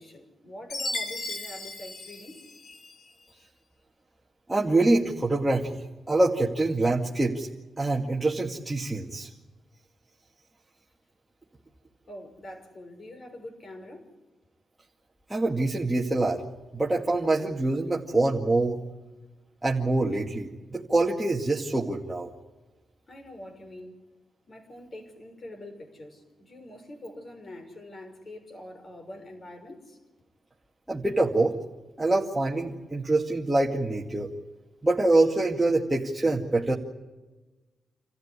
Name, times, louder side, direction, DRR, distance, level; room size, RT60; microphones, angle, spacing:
voice 1, 0.0-2.4 12.1-14.1 23.1-24.0 24.5-30.0, left 1 dB, 45° left, 6.2 m, -44 dB
Chime, 0.7-3.0, left 2 dB, 60° left, 3.1 m, -35 dB
voice 2, 4.5-7.5 7.8-9.3 15.3-16.4 16.7-18.8 19.6-22.3 30.9-31.5 32.0-34.3 34.8-36.7, right 2 dB, 15° right, 2.2 m, -25 dB
27.5 x 14.5 x 9.9 m
cardioid pair, 75°, 0 cm